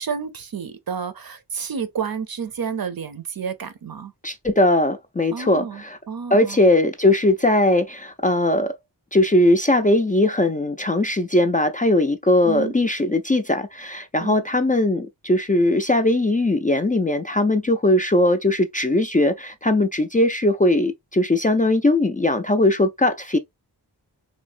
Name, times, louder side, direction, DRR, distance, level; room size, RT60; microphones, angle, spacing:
voice 1, 0.0-4.1 5.3-6.6 12.4-12.7 14.2-14.4, right 6 dB, 60° right, 0.6 m, -30 dB
voice 2, 4.2-6.0 6.3-8.7 9.1-23.4, left 1 dB, 20° left, 0.4 m, -19 dB
3.2 x 2.0 x 2.5 m
wide cardioid pair, 45°, 41 cm